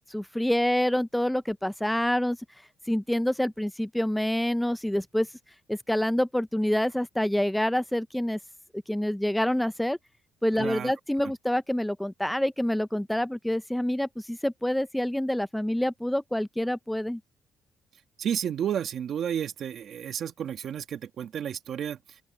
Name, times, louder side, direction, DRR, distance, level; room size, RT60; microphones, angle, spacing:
voice 1, 0.1-2.4 2.9-5.3 5.7-8.4 8.9-10.0 10.4-17.2, left 1 dB, 5° left, 0.5 m, -27 dB
voice 2, 10.6-10.9 11.2-11.3 18.2-22.2, right 9 dB, 65° right, 1.7 m, -32 dB
open air
cardioid pair, 90°, 0 cm